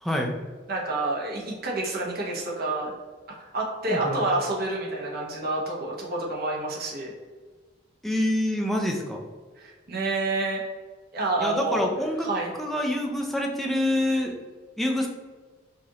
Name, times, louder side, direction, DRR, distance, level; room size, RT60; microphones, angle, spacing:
voice 1, 0.0-0.4 3.9-4.2 8.0-9.2 11.4-12.3 12.6-14.4 14.8-15.1, left 1 dB, ahead, 1 dB, 0.4 m, -26 dB
voice 2, 0.7-2.9 3.5-7.1 9.6-10.6 11.1-11.9 12.2-12.5, right 2 dB, 50° right, -3 dB, 1.0 m, -28 dB
4.8 x 2.6 x 2.8 m, 1.4 s
head